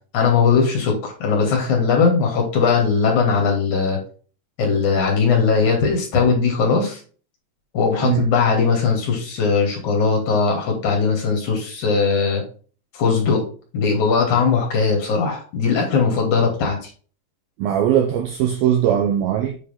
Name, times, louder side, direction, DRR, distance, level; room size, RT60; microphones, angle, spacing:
voice 1, 0.1-4.0 4.6-7.0 7.7-12.4 13.0-13.4 13.7-16.9, left 5 dB, 45° left, 3.5 m, -19 dB
voice 2, 17.6-19.6, right 10 dB, 85° right, 2.1 m, -20 dB
8.3 x 4.8 x 3.7 m
omnidirectional pair, 5.4 m